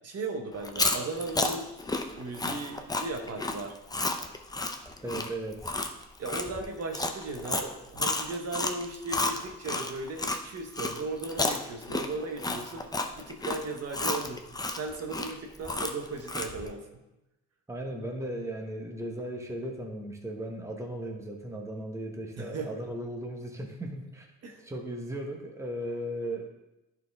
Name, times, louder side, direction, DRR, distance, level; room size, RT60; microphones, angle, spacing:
voice 1, 0.0-1.7 2.2-3.8 6.2-12.8 13.2-14.5 14.7-16.9 22.4-22.8 24.4-24.7, right 3 dB, 55° right, 3 dB, 1.1 m, -36 dB
Chewing mastication, 0.6-10.4 10.7-16.7, left 2 dB, 15° left, 0.6 m, -31 dB
voice 2, 5.0-5.7 17.7-24.3 24.6-26.5, right 1 dB, 10° right, 1 dB, 1.1 m, -36 dB
10.5 x 4.5 x 3.5 m, 0.95 s
cardioid pair, 90°, 30 cm